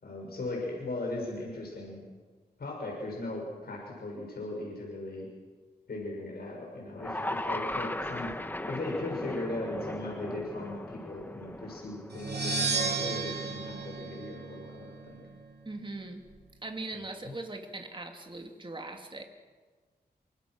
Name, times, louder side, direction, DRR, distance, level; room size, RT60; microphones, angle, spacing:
voice 1, 0.0-2.0 2.6-5.3 5.9-8.3 8.6-15.2 16.9-17.3, left 2 dB, 65° left, -1 dB, 6.7 m, -38 dB
sound 1, 7.0-13.2, left 1 dB, 10° left, 1.3 m, -38 dB
sound 2, 12.1-15.0, right 4 dB, 75° right, 3.4 m, -33 dB
voice 2, 15.6-16.3 16.6-19.2, right 2 dB, 30° right, 3 dB, 2.8 m, -40 dB
27.5 x 24.5 x 6.4 m, 1.4 s
wide cardioid pair, 115°, 17 cm